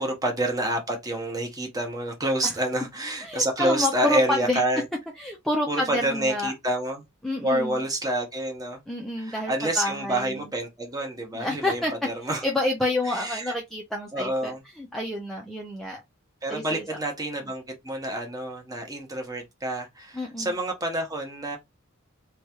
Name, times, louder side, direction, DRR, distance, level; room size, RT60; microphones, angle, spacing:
voice 1, 0.0-4.8 5.7-7.0 7.4-8.8 9.2-12.4 13.1-13.5 14.1-14.6 16.4-21.6, right 1 dB, 15° right, 0.8 m, -28 dB
voice 2, 3.2-4.6 5.1-6.5 7.2-7.8 8.9-10.5 11.3-11.9 12.4-16.0 16.5-16.9 20.1-20.6, left 1 dB, ahead, 0.4 m, -29 dB
3.0 x 2.2 x 2.9 m
head